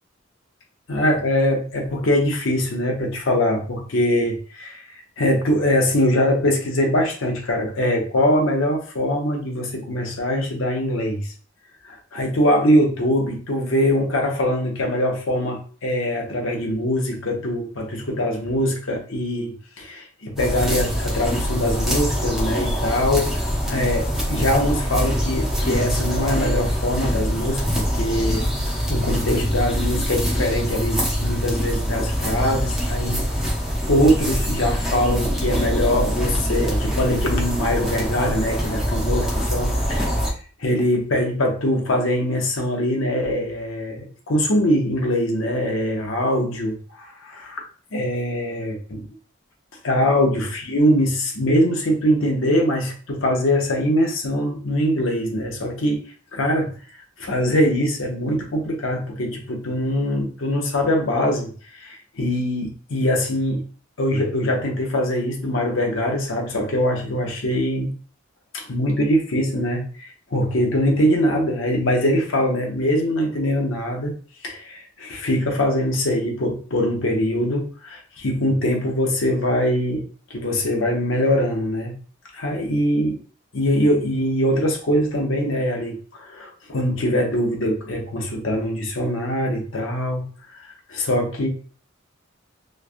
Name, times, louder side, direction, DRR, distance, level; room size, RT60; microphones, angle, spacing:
voice 1, 0.9-4.8 5.2-11.3 11.9-28.4 28.9-33.2 33.9-40.1 40.6-47.6 47.9-49.0 49.8-56.0 56.3-56.7 57.2-61.5 61.8-63.6 64.0-67.9 68.5-74.1 74.4-80.0 80.3-81.9 82.3-83.2 83.5-90.2 90.9-91.5, equal, 65° left, 1 dB, 0.7 m, -22 dB
sound 1, 20.4-40.3, equal, ahead, 0.7 m, -24 dB
3.1 x 2.3 x 2.4 m, 0.40 s
head